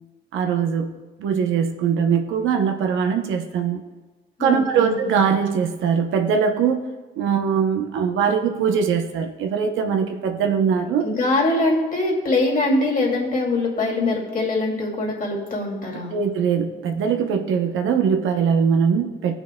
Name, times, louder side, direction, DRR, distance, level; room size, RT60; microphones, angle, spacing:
voice 1, 0.3-3.8 4.4-6.9 7.2-11.1 16.1-19.3, right 6 dB, 80° right, 4 dB, 0.8 m, -21 dB
voice 2, 4.4-4.9 11.0-16.2, left 2 dB, 45° left, -2 dB, 2.6 m, -23 dB
17.0 x 6.0 x 2.3 m, 1.2 s
cardioid pair, 90°, 20 cm